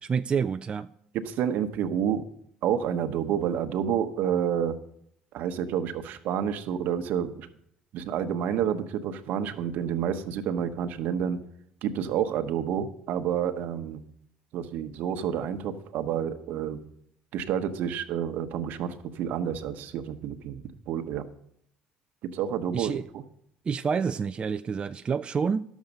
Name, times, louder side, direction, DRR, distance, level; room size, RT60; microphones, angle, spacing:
voice 1, 0.0-0.9 22.7-23.1 23.7-25.6, right 6 dB, 35° right, 0.4 m, -28 dB
voice 2, 1.1-2.3 2.6-4.7 5.3-7.5 7.9-11.4 11.8-14.0 14.5-16.8 17.3-21.2 22.2-23.2, right 9 dB, 65° right, 1.1 m, -29 dB
11.5 x 7.3 x 5.4 m
supercardioid pair, 75°, 3 cm